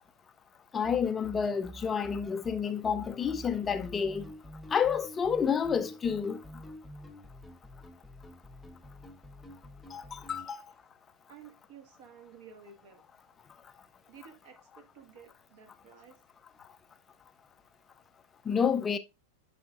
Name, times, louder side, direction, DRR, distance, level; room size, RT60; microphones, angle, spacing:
voice 1, 0.7-4.3 4.7-6.4 9.9-10.6 18.5-19.0, left 7 dB, 20° left, 0.5 m, -29 dB
sound 1, 0.8-10.5, equal, ahead, 0.9 m, -48 dB
voice 2, 11.3-13.4 14.1-16.2, right 6 dB, 50° right, 1.7 m, -54 dB
10.5 x 5.7 x 2.5 m
figure-of-eight pair, 90°, 0 cm